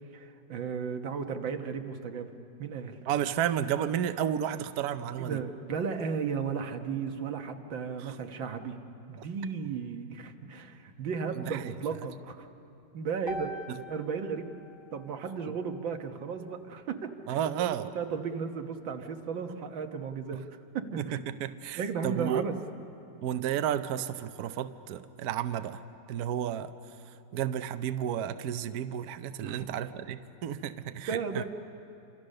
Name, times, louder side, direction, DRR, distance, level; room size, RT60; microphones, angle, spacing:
voice 1, 0.1-2.3 2.6-3.0 5.2-8.8 9.1-12.5 12.9-13.6 13.9-14.5 14.9-20.4 20.7-21.2 21.8-22.6 29.4-29.7 31.1-31.4, right 6 dB, 85° right, 5 dB, 2.0 m, -35 dB
voice 2, 3.1-5.4 8.0-8.2 11.4-11.7 13.7-13.8 17.3-17.9 21.0-22.4 23.2-25.8 26.1-26.7 27.3-31.4, right 10 dB, 65° right, 10 dB, 1.1 m, -32 dB
sound 1, 13.3-17.4, equal, 30° left, 2.3 m, -45 dB
29.0 x 26.0 x 6.6 m, 2.7 s
omnidirectional pair, 2.0 m